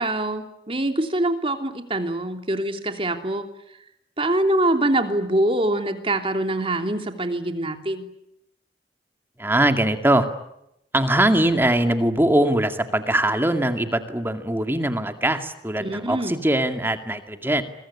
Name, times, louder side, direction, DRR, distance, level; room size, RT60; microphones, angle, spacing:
voice 1, 0.0-3.5 4.2-8.1 15.8-16.3, right 1 dB, 30° right, 6 dB, 3.1 m, -24 dB
voice 2, 9.4-10.3 10.9-17.6, right 1 dB, 15° right, 7 dB, 2.2 m, -21 dB
26.5 x 22.5 x 9.9 m, 0.81 s
head